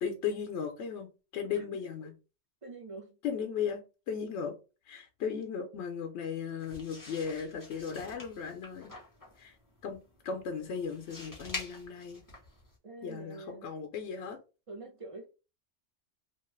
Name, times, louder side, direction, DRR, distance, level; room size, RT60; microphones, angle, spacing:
voice 1, 0.0-1.1 1.3-2.1 3.2-4.5 4.9-8.9 9.4-9.6 9.8-10.0 10.2-12.2 13.0-14.4, left 6 dB, 80° left, 0.9 m, -36 dB
voice 2, 1.5-2.0 2.6-3.2 5.3-5.4 12.8-13.7 14.7-15.3, right 3 dB, 40° right, 0.5 m, -46 dB
sound 1, 6.6-12.8, left 2 dB, 20° left, 0.8 m, -47 dB
2.8 x 2.3 x 3.1 m
omnidirectional pair, 1.2 m